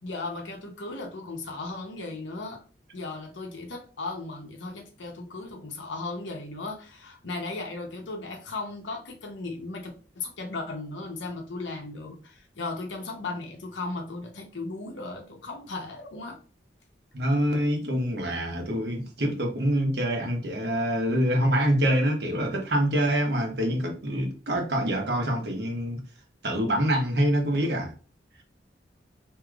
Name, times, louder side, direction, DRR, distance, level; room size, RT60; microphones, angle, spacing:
voice 1, 0.0-2.6 2.9-16.4, left 3 dB, 90° left, 0.8 m, -36 dB
voice 2, 17.1-26.0 26.4-27.9, equal, 65° right, 1.0 m, -25 dB
4.8 x 2.8 x 2.4 m
head